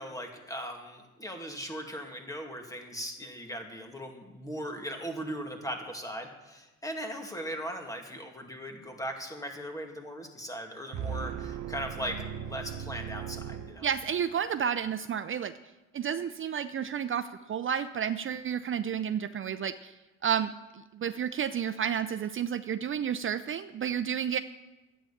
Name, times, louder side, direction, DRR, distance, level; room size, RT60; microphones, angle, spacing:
voice 1, 0.0-13.9, equal, 10° left, 3 dB, 2.3 m, -39 dB
sound 1, 10.9-14.4, right 8 dB, 70° right, 0.9 m, -38 dB
voice 2, 13.8-15.5 15.9-19.9 20.2-20.5 20.9-24.4, right 8 dB, 45° right, 11 dB, 0.5 m, -31 dB
11.5 x 9.2 x 7.2 m, 1.1 s
cardioid pair, 90°, 30 cm